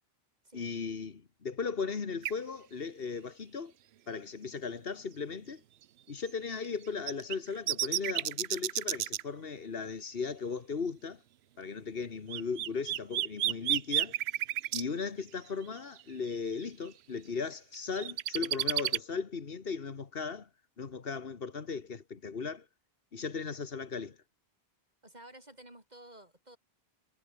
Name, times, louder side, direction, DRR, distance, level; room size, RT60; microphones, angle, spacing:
voice 1, 0.5-3.7 4.1-5.6 6.1-11.2 11.6-14.2 14.7-20.5 20.8-22.6 23.1-24.2, left 5 dB, 65° left, 1.7 m, -37 dB
sound 1, 2.2-2.3 6.3-6.4 7.1-9.2 12.3-14.8 16.0-16.1 16.5-16.6 17.7-19.0, right 12 dB, 90° right, 0.9 m, -31 dB
voice 2, 25.0-26.6, right 1 dB, 40° right, 6.0 m, -52 dB
omnidirectional pair, 1.1 m